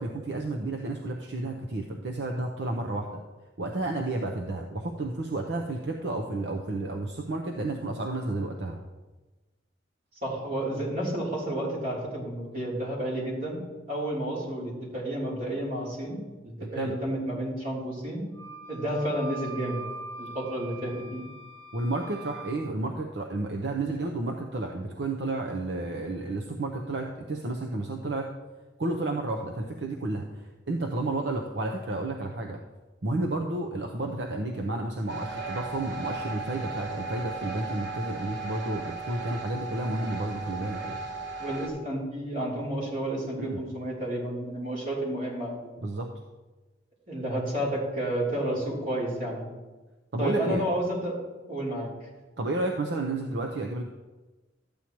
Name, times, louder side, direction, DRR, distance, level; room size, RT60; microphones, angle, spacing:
voice 1, 0.0-3.2 3.6-8.8 16.6-16.9 21.7-28.3 28.8-32.6 33.0-41.0 43.4-43.6 45.8-46.1 50.1-50.6 52.4-53.8, right 2 dB, 65° right, 2 dB, 0.7 m, -31 dB
voice 2, 10.2-13.6 13.9-18.2 18.7-19.8 20.2-21.3 41.4-45.7 47.1-49.5 50.2-51.2 51.5-51.9, right 1 dB, 50° right, -5 dB, 3.4 m, -31 dB
Wind instrument woodwind instrument, 18.3-22.6, right 3 dB, 15° left, 1.3 m, -42 dB
sound 1, 35.1-41.7, right 3 dB, 85° right, 1.3 m, -36 dB
13.0 x 8.7 x 3.0 m, 1.2 s
head